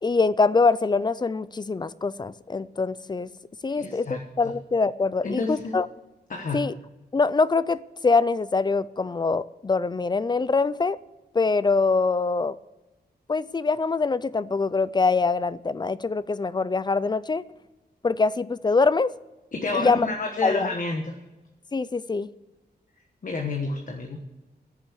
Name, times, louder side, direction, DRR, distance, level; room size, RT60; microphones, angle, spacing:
voice 1, 0.0-3.3 3.6-5.9 6.5-6.7 7.1-11.0 11.3-12.6 13.3-17.4 18.0-19.1 19.7-20.1 20.4-20.7 21.7-22.3, left 4 dB, 25° left, 0.4 m, -24 dB
voice 2, 3.7-4.5 5.2-5.7 6.3-6.7 19.5-21.2 23.2-24.2, left 3 dB, 50° left, 1.3 m, -30 dB
14.0 x 7.3 x 8.4 m
wide cardioid pair, 150°, 17 cm